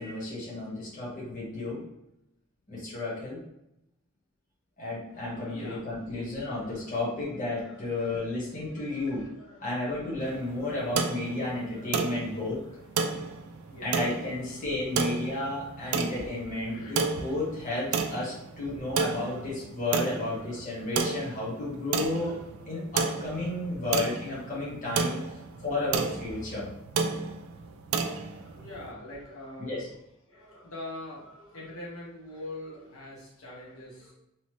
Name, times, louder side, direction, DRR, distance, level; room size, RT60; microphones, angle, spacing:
voice 1, 0.0-1.8 2.7-3.4 4.8-9.2 9.6-12.6 13.8-22.4 22.7-25.2 25.6-26.7 29.6-29.9, left 2 dB, 40° left, -7 dB, 1.1 m, -32 dB
voice 2, 5.1-7.0 7.3-9.7 10.2-10.9 11.6-12.1 12.6-15.2 16.5-17.5 19.1-19.5 20.3-20.6 21.7-22.4 23.0-23.9 24.8-25.8 28.1-29.9 30.3-34.1, left 1 dB, 90° left, -5 dB, 1.0 m, -47 dB
sound 1, 10.2-28.9, right 5 dB, 85° right, 0.3 m, -33 dB
2.9 x 2.0 x 3.1 m, 0.84 s
head